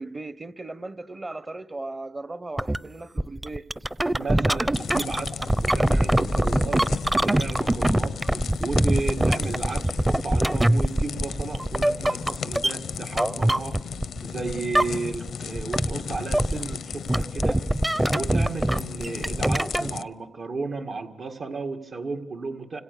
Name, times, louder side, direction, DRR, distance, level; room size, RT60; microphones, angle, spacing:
voice 1, 0.0-3.7, right 2 dB, 30° right, 1.2 m, -37 dB
sound 1, 2.6-2.8 3.2-14.2 14.5-15.3 15.6-19.9, right 1 dB, 15° right, 0.8 m, -23 dB
voice 2, 4.2-6.8 7.2-13.8 14.2-17.6 18.1-22.8, right 4 dB, 65° right, 2.1 m, -34 dB
sound 2, 4.7-20.0, left 7 dB, 80° left, 0.8 m, -35 dB
29.5 x 26.5 x 6.8 m
cardioid pair, 75°, 0 cm